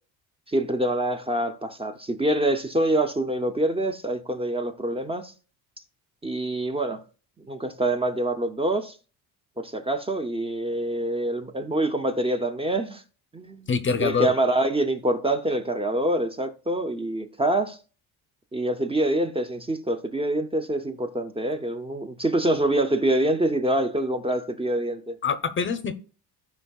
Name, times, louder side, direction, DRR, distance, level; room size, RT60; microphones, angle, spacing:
voice 1, 0.5-5.3 6.2-7.0 7.4-8.9 9.6-13.0 13.3-13.7 14.0-17.8 18.5-25.2, right 1 dB, 15° right, 0.6 m, -25 dB
voice 2, 13.7-14.3 25.2-25.9, left 6 dB, 30° left, 0.7 m, -24 dB
15.0 x 5.1 x 2.3 m
cardioid pair, 105°, 39 cm